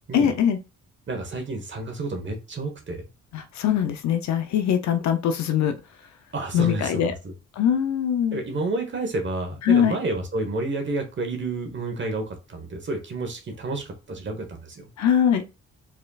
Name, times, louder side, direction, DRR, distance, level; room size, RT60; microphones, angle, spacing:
voice 1, 0.1-0.6 3.3-5.7 6.5-7.1 7.6-8.4 9.6-10.0 15.0-15.4, left 9 dB, 65° left, 0.6 m, -22 dB
voice 2, 1.1-3.0 6.3-7.0 8.3-14.9, right 2 dB, 40° right, 1.1 m, -30 dB
4.9 x 4.2 x 2.3 m
cardioid pair, 90°, 30 cm